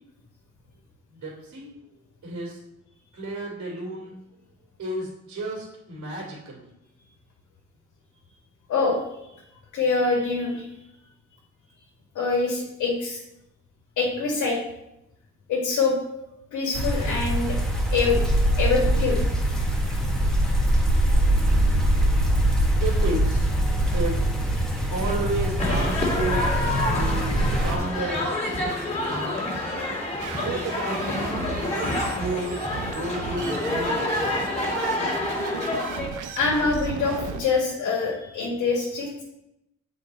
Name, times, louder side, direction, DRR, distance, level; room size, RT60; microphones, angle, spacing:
voice 1, 1.1-1.7 2.2-2.6 3.1-4.1 4.8-6.6 22.8-24.2 24.9-26.4 26.9-27.3 27.6-28.4 29.1-29.5 30.4-31.3 31.6-34.4, right 2 dB, 65° right, -5 dB, 2.8 m, -32 dB
voice 2, 8.7-9.0 9.7-10.7 12.2-13.2 14.0-14.6 15.5-16.0 16.5-17.6 17.9-18.2 18.6-19.2 29.7-29.9 36.4-39.2, left 4 dB, 75° left, -1 dB, 1.7 m, -24 dB
sound 1, 16.7-27.8, right 1 dB, ahead, 1.3 m, -23 dB
sound 2, 25.6-36.1, left 2 dB, 20° left, 2.2 m, -28 dB
sound 3, 30.2-37.4, right 6 dB, 80° right, 0.8 m, -35 dB
7.2 x 4.6 x 4.1 m, 0.87 s
cardioid pair, 90°, 30 cm